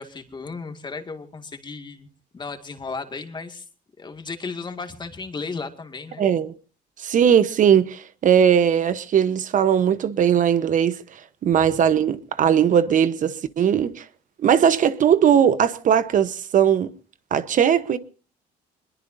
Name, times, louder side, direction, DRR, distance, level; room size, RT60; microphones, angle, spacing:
voice 1, 0.0-2.1 2.3-3.7 4.0-6.3 11.5-11.8, left 4 dB, 25° left, 2.2 m, -35 dB
voice 2, 6.2-6.5 7.0-11.0 11.4-14.0 14.4-16.9 17.3-18.0, right 8 dB, 50° right, 1.0 m, -19 dB
22.5 x 21.5 x 2.7 m
cardioid pair, 110°, 17 cm